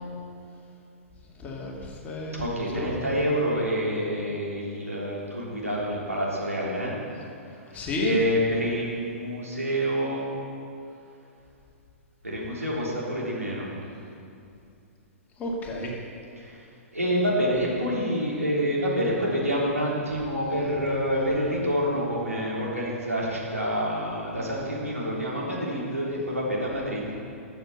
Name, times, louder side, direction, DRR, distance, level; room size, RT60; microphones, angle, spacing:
voice 1, 1.4-2.4 2.7-2.9 7.7-8.1 15.4-15.9, left 2 dB, 20° left, -2 dB, 2.2 m, -32 dB
voice 2, 2.3-6.9 7.7-10.3 12.2-13.7 16.4-16.6 16.9-27.1, equal, 85° right, -5 dB, 3.2 m, -27 dB
12.5 x 7.1 x 6.8 m, 2.6 s
figure-of-eight pair, 110°, 8 cm